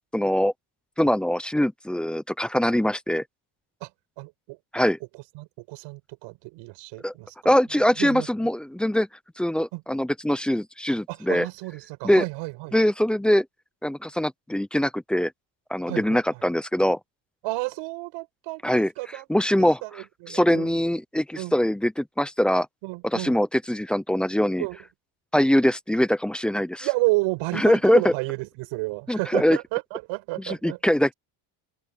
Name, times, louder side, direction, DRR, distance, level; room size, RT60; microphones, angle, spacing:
voice 1, 0.1-0.5 1.0-3.2 4.7-5.0 7.0-7.1 7.4-9.1 9.4-11.5 12.0-12.2 12.7-13.5 13.8-15.3 15.7-17.0 18.6-18.9 19.3-19.8 20.3-22.7 23.0-24.6 25.3-26.9 27.5-28.1 29.1-29.6 30.4-31.1, equal, ahead, 0.3 m, -22 dB
voice 2, 4.2-4.6 5.3-7.5 8.0-8.5 9.7-9.8 11.1-12.8 15.9-16.4 17.4-19.3 19.5-20.8 21.4-21.6 22.8-23.4 24.6-24.8 26.8-30.8, right 24 dB, 80° right, 7.1 m, -31 dB
cardioid pair, 150°, 45 cm